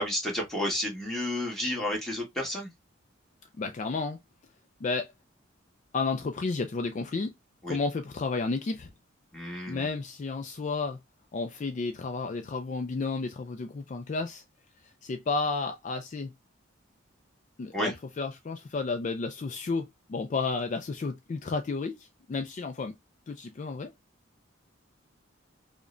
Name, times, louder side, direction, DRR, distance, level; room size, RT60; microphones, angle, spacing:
voice 1, 0.0-2.7 7.6-7.8 9.3-9.9 17.7-17.9, left 1 dB, ahead, 1.3 m, -31 dB
voice 2, 3.6-4.2 4.8-5.1 5.9-7.3 7.7-8.9 9.7-11.0 11.3-14.4 14.8-16.3 17.6-22.9 23.3-23.9, left 4 dB, 35° left, 0.3 m, -32 dB
4.9 x 2.1 x 2.5 m
head